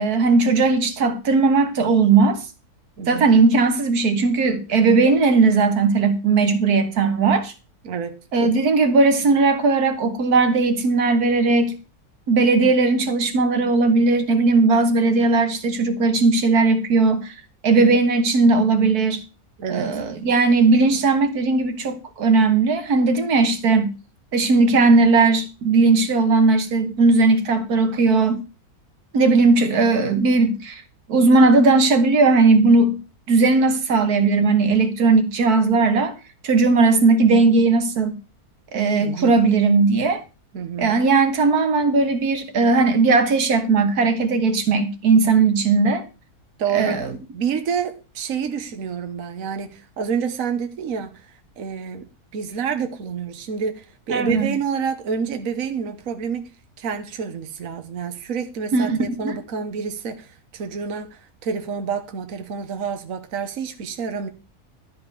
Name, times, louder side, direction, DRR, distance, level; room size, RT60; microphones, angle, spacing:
voice 1, 0.0-2.4 3.1-7.5 8.3-11.8 12.3-17.3 17.6-19.2 19.7-23.9 24.3-28.4 29.1-30.8 31.1-33.0 33.3-36.2 36.4-38.2 38.7-40.2 40.8-46.0 46.7-47.1 54.1-54.5 58.7-59.0 59.2-59.4, right 3 dB, 80° right, 1.8 m, -17 dB
voice 2, 3.0-3.3 7.8-8.2 19.6-19.9 39.0-39.3 40.5-41.0 46.6-47.0 47.3-51.3 51.6-52.1 52.3-56.5 56.8-64.3, right 6 dB, 65° right, 1.5 m, -28 dB
13.0 x 5.2 x 6.7 m
omnidirectional pair, 1.6 m